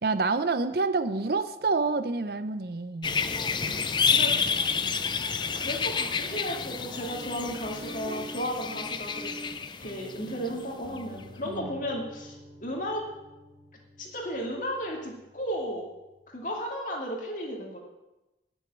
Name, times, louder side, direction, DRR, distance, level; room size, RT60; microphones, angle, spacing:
voice 1, 0.0-3.2 3.6-3.9 4.3-4.4 11.4-11.8, right 3 dB, 55° right, 11 dB, 0.6 m, -28 dB
sound 1, 3.0-10.6 11.0-11.1, left 5 dB, 25° left, 0.4 m, -29 dB
sound 2, 5.4-6.0, left 1 dB, 90° left, 2.4 m, -50 dB
voice 2, 5.5-9.3 9.8-12.4 12.6-13.0 14.0-15.9 16.3-17.8, equal, 45° left, -1 dB, 2.4 m, -34 dB
Guitar, 7.1-16.5, right 1 dB, 85° right, 2.8 m, -47 dB
10.0 x 6.4 x 8.9 m, 1.0 s
head